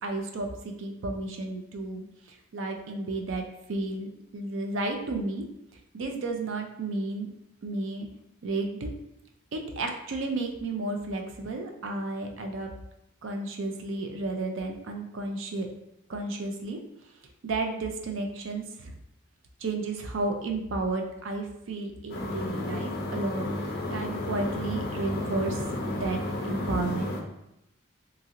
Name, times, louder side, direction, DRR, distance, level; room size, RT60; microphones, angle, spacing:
voice 1, 0.0-2.0 2.5-3.4 3.7-4.1 4.3-5.4 5.9-7.3 7.6-8.1 8.4-8.9 9.5-12.7 13.2-15.7 16.1-16.8 17.4-18.9 19.6-23.5 23.9-25.6 25.9-26.2 26.5-27.1, right 2 dB, 70° right, 4 dB, 0.4 m, -32 dB
sound 1, 22.1-27.2, left 1 dB, 50° left, 0.4 m, -32 dB
2.9 x 2.8 x 2.5 m, 0.84 s
head